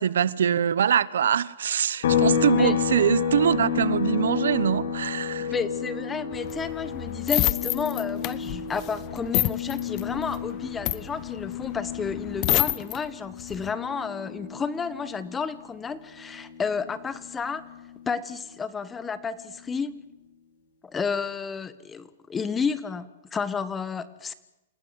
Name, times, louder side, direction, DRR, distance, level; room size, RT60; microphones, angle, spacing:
voice 1, 0.0-5.5, right 8 dB, 80° right, 0.9 m, -23 dB
sound 1, 2.0-15.6 15.9-18.1, left 7 dB, 70° left, 3.1 m, -30 dB
voice 2, 5.4-17.6 18.1-20.0 20.8-24.3, left 5 dB, 15° left, 1.5 m, -31 dB
sound 2, 6.3-13.0 13.4-13.7, left 19 dB, 35° left, 0.9 m, -28 dB
28.5 x 18.0 x 7.7 m
hypercardioid pair, 140°, 0 cm